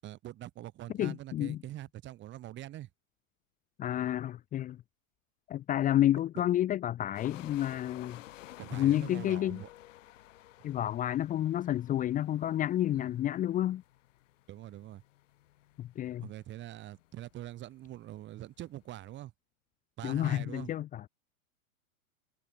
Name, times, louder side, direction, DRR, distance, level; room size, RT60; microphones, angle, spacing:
voice 1, 0.0-2.9 8.6-9.7 12.9-13.1 14.5-15.0 16.2-19.3 20.0-20.7, right 14 dB, 25° right, 2.3 m, -44 dB
voice 2, 1.0-1.6 3.8-4.8 5.5-8.2 8.7-9.6 10.6-13.8 15.8-16.3 20.0-21.0, left 12 dB, 20° left, 0.9 m, -30 dB
sound 1, 7.1-19.2, left 15 dB, 65° left, 2.7 m, -54 dB
hypercardioid pair, 135°, 41 cm